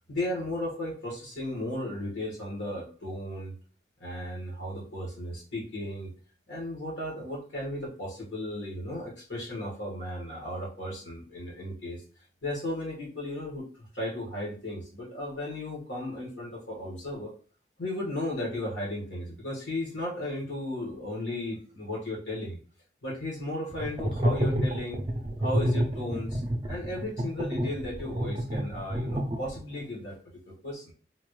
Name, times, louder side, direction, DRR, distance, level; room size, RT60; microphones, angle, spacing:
voice 1, 0.1-3.5 4.0-6.1 6.5-12.0 12.4-17.3 17.8-22.6 23.0-25.0 25.4-26.4 26.7-30.2 30.5-30.9, left 1 dB, 80° left, -3 dB, 1.7 m, -35 dB
sound 1, 23.7-29.8, equal, 30° right, 0.5 m, -29 dB
3.9 x 2.4 x 3.1 m, 0.42 s
head